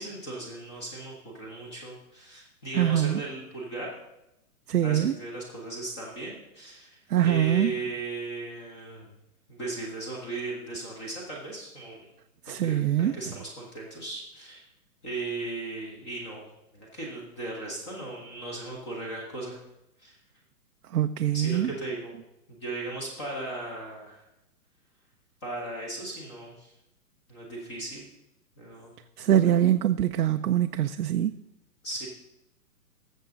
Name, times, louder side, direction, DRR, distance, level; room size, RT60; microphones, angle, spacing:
voice 1, 0.0-3.9 4.8-9.1 9.5-12.0 12.6-14.6 15.0-16.4 16.7-19.6 20.0-20.2 21.3-22.1 22.5-24.2 25.4-26.7 27.3-28.0 28.6-28.9 29.2-29.6 31.8-32.1, right 2 dB, 20° left, -2 dB, 1.4 m, -37 dB
voice 2, 2.7-3.2 4.7-5.1 7.1-7.7 12.5-13.1 20.9-21.7 29.2-31.3, right 11 dB, 75° right, 7 dB, 0.7 m, -23 dB
19.0 x 7.3 x 3.9 m, 0.91 s
hypercardioid pair, 175°, 47 cm